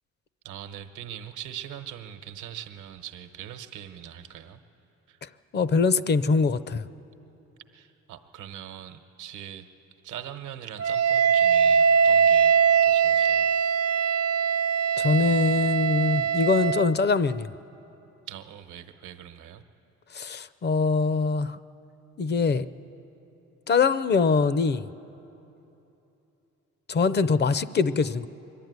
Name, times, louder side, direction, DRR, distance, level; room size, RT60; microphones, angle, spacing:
voice 1, 0.4-4.6 5.1-5.2 7.7-9.7 10.0-13.5 18.3-19.6, right 10 dB, 85° right, 8 dB, 1.0 m, -41 dB
voice 2, 5.2-6.9 15.0-17.5 20.1-21.6 22.2-22.7 23.7-24.9 26.9-28.3, left 4 dB, 35° left, 15 dB, 0.6 m, -23 dB
Wind instrument woodwind instrument, 10.8-16.9, right 7 dB, 55° right, 0.6 m, -21 dB
23.0 x 12.0 x 9.4 m, 3.0 s
cardioid pair, 90°, 30 cm